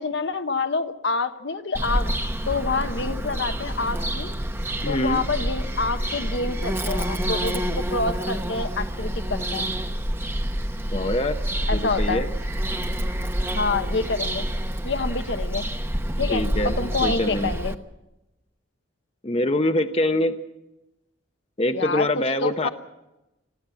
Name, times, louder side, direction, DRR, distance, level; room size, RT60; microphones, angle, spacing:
voice 1, 0.0-4.3 4.8-9.7 11.7-12.2 13.5-14.5 14.8-15.7 16.2-17.7 21.7-22.7, left 3 dB, 65° left, 8 dB, 1.1 m, -27 dB
Bird vocalization bird call bird song, 1.7-17.7, right 1 dB, 10° right, 0.9 m, -27 dB
voice 2, 4.8-5.2 10.9-11.4 11.7-12.3 16.3-16.7 17.0-17.5 19.2-20.3 21.6-22.7, left 1 dB, 30° left, 8 dB, 0.8 m, -24 dB
22.0 x 15.0 x 8.4 m, 0.95 s
head